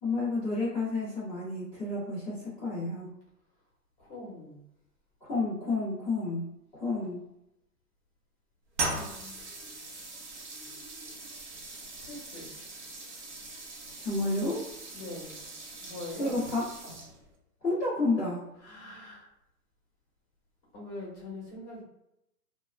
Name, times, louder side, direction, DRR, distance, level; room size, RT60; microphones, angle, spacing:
voice 1, 0.0-3.1 5.2-6.5 6.7-7.2 14.0-14.6 16.2-16.7 17.6-18.4, left 2 dB, ahead, -25 dB, 0.4 m, -30 dB
voice 2, 4.0-4.6 8.9-9.4 12.0-12.5 14.9-15.5 15.8-16.4 18.6-19.3 20.7-21.8, left 2 dB, 20° left, -6 dB, 0.8 m, -43 dB
sound 1, 8.7-17.3, right 2 dB, 45° right, 0.7 m, -40 dB
2.3 x 2.0 x 3.1 m, 0.82 s
hypercardioid pair, 140°, 48 cm